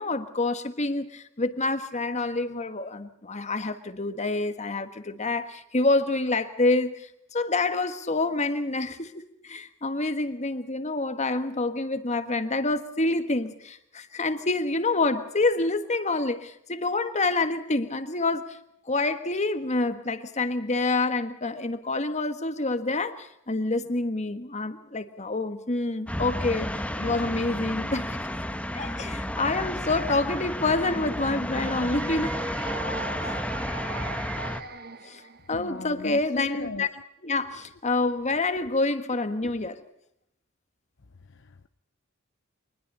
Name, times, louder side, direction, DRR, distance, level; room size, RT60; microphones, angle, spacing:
voice 1, 0.0-18.6 18.9-28.2 28.7-32.5 33.2-33.3 35.0-35.2 35.5-36.9 37.2-39.8, left 2 dB, 35° left, 1.6 m, -27 dB
sound 1, 26.1-34.6, left 1 dB, 5° left, 1.3 m, -32 dB
sound 2, 31.5-35.7, right 5 dB, 50° right, 1.5 m, -39 dB
voice 2, 35.5-36.9 41.2-41.7, left 3 dB, 60° left, 0.8 m, -38 dB
25.0 x 21.0 x 5.5 m
head